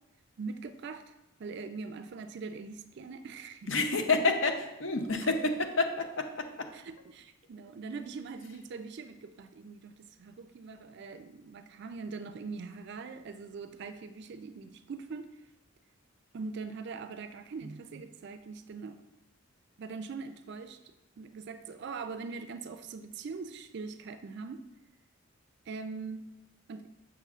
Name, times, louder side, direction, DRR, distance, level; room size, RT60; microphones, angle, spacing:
voice 1, 0.4-1.1 1.4-4.0 5.2-5.3 6.7-15.3 16.3-19.0 19.8-20.8 21.2-24.7 25.7-26.2 26.7-26.9, right 4 dB, 55° right, 10 dB, 0.4 m, -42 dB
voice 2, 3.7-6.7, left 3 dB, 65° left, 5 dB, 0.7 m, -29 dB
6.8 x 6.0 x 2.4 m, 0.96 s
head